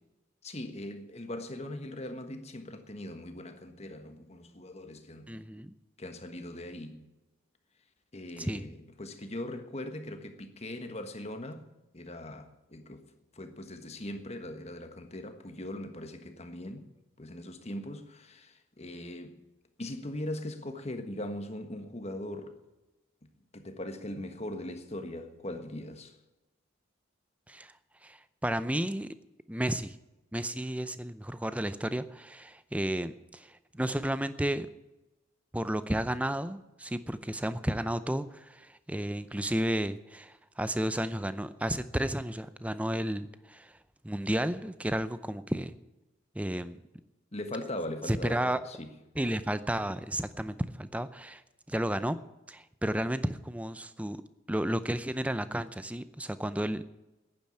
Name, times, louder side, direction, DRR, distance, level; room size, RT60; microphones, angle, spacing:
voice 1, 0.4-5.4 6.0-7.1 8.1-11.7 11.9-13.0 13.3-16.8 17.2-19.4 19.8-22.5 23.5-26.1 47.3-48.9, left 1 dB, 30° left, 1.4 m, -40 dB
voice 2, 5.3-5.7 8.4-8.7 27.5-27.7 28.0-29.1 29.5-30.0 30.3-34.7 35.5-43.8 44.0-45.7 46.3-46.8 48.1-48.6 49.2-51.4 51.7-52.2 52.5-54.2 54.5-56.9, right 1 dB, 5° right, 0.5 m, -32 dB
10.5 x 10.0 x 9.9 m
head